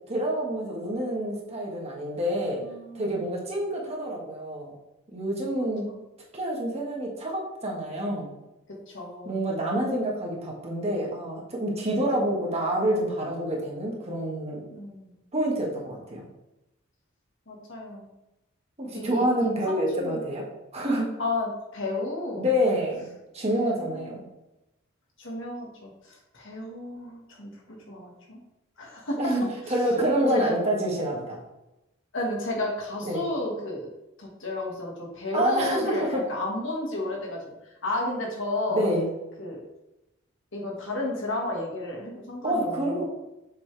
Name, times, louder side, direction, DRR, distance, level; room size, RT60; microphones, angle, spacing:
voice 1, 0.1-2.6 2.9-4.7 5.1-5.9 6.3-8.3 9.2-14.6 15.3-16.2 18.8-20.4 20.7-21.1 22.4-23.1 23.3-24.2 29.2-31.4 33.1-33.2 35.3-36.2 38.7-39.0 42.4-43.0, right 1 dB, 30° right, -2 dB, 1.7 m, -27 dB
voice 2, 2.6-3.2 5.6-6.0 8.7-9.4 14.7-15.2 17.5-18.1 18.9-20.2 21.2-22.5 23.6-24.2 25.2-28.4 28.8-29.2 30.3-30.6 32.1-33.9 34.2-37.5 37.8-38.8 39.4-39.6 40.5-43.0, left 2 dB, 60° left, -1 dB, 1.9 m, -33 dB
7.1 x 5.5 x 3.4 m, 0.94 s
head